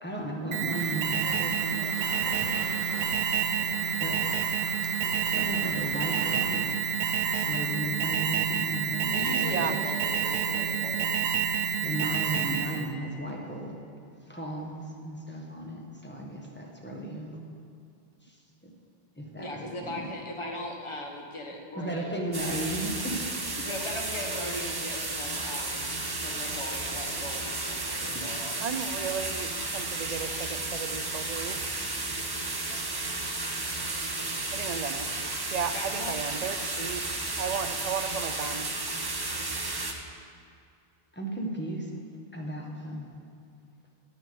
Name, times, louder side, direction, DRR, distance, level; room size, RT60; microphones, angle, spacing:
voice 1, 0.0-1.6 4.0-4.1 5.2-6.8 7.4-9.8 11.8-13.8 14.2-17.4 18.2-18.7 19.2-20.1 21.8-23.2 23.5-23.6 28.1-28.2 41.1-41.9 42.3-43.1, right 1 dB, 10° left, -1 dB, 1.3 m, -35 dB
Alarm, 0.5-12.9, right 7 dB, 85° right, 0.8 m, -28 dB
sound 1, 0.7-7.7, left 2 dB, 50° left, 1.1 m, -44 dB
voice 2, 1.2-2.1 9.5-9.8 28.6-31.8 34.5-35.1 35.5-37.0 37.4-38.7, right 7 dB, 55° right, 9 dB, 0.5 m, -35 dB
voice 3, 3.5-3.9 9.0-11.2 19.4-22.2 23.6-25.9 26.1-28.5 35.4-36.1, left 1 dB, 30° left, 0 dB, 1.3 m, -39 dB
sound 2, 22.3-39.9, right 2 dB, 25° right, 0.7 m, -33 dB
9.7 x 6.5 x 6.9 m, 2.4 s
omnidirectional pair, 1.1 m